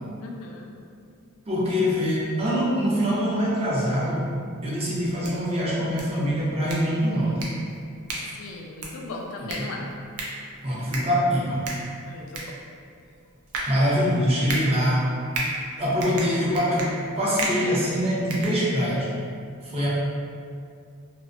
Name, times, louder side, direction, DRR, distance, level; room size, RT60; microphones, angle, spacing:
voice 1, 0.2-0.7 8.4-9.8 12.0-12.5, left 2 dB, 65° left, 1 dB, 0.3 m, -37 dB
voice 2, 1.5-4.3 4.6-7.4 9.4-9.7 10.6-11.6 13.7-15.1 15.7-19.1 19.6-19.9, equal, 30° right, -7 dB, 0.5 m, -24 dB
sound 1, 5.0-19.1, right 2 dB, 90° right, 0.5 m, -36 dB
2.4 x 2.1 x 2.4 m, 2.3 s
head